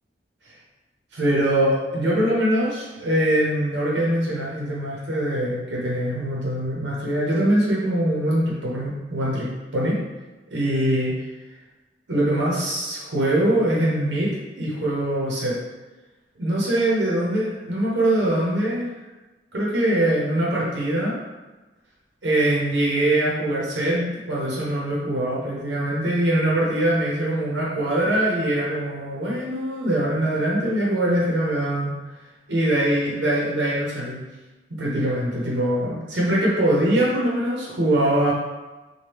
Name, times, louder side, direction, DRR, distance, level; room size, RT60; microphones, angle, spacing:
voice 1, 1.1-10.0 10.5-11.1 12.1-14.3 14.6-15.6 16.4-18.9 19.5-21.1 22.2-31.9 32.5-34.2 34.8-38.3, right 1 dB, 75° right, -5 dB, 0.8 m, -23 dB
2.9 x 2.3 x 3.3 m, 1.2 s
head